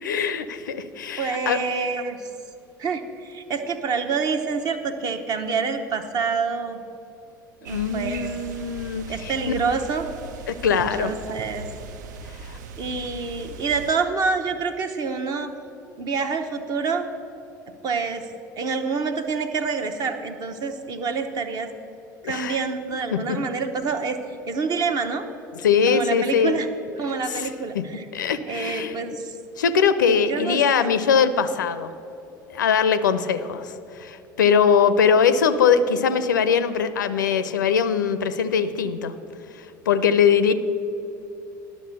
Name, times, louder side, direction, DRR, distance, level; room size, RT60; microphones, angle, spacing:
voice 1, 0.0-1.6 7.7-9.3 10.5-11.1 12.5-12.6 22.2-22.6 23.1-23.4 25.6-26.6 27.3-27.5 27.7-27.8 28.1-29.0 29.6-31.9 32.5-39.1 39.9-40.5, left 6 dB, 70° left, 12 dB, 0.5 m, -21 dB
voice 2, 1.2-2.3 2.8-6.8 7.6-8.3 9.1-10.1 10.8-11.6 12.8-15.5 16.0-17.1 17.8-18.3 18.6-21.7 22.2-24.2 24.5-25.3 25.9-26.7 27.0-28.0 28.5-29.4 30.3-30.9, right 5 dB, 40° right, 7 dB, 0.9 m, -27 dB
sound 1, 7.6-13.9, right 4 dB, 65° right, 0.5 m, -39 dB
11.5 x 6.2 x 6.6 m, 2.9 s
figure-of-eight pair, 65°, 10 cm